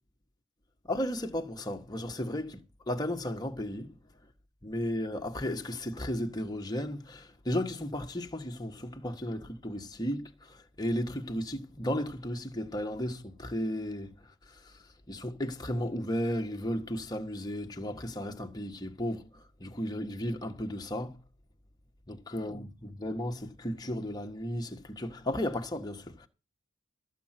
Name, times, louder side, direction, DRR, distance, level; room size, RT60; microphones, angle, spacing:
voice 1, 0.9-2.6 2.9-3.9 4.6-14.1 15.1-21.2 22.1-26.3, left 1 dB, 20° left, 1.6 m, -34 dB
14.0 x 7.7 x 6.0 m
head